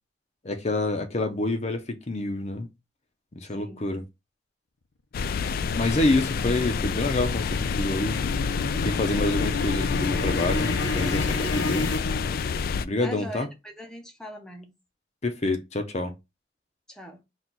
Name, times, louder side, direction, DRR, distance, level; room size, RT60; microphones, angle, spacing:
voice 1, 0.4-2.7 3.4-4.0 5.8-8.3 8.8-11.9 12.8-13.5 15.2-16.1, left 2 dB, 40° left, 0.7 m, -27 dB
voice 2, 3.6-3.9 13.0-14.7 16.9-17.2, equal, 5° left, 0.7 m, -41 dB
sound 1, 5.1-12.8, left 5 dB, 55° left, 0.3 m, -28 dB
sound 2, 6.9-12.8, left 3 dB, 80° left, 0.7 m, -31 dB
4.4 x 2.4 x 3.8 m
head